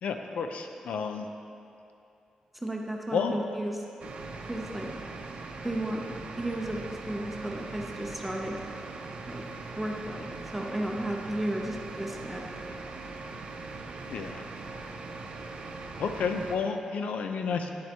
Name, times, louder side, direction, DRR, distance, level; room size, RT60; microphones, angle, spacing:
voice 1, 0.0-1.3 3.1-3.4 14.1-14.4 16.0-17.7, left 5 dB, 85° left, 5 dB, 0.5 m, -31 dB
voice 2, 2.5-3.9 4.5-4.9 5.6-6.0 6.4-8.6 9.3-9.4 9.8-12.4, right 1 dB, 5° right, 0 dB, 0.6 m, -34 dB
sound 1, 4.0-16.6, right 3 dB, 60° right, 0.6 m, -41 dB
9.5 x 7.6 x 2.9 m, 2.6 s
wide cardioid pair, 115°, 2 cm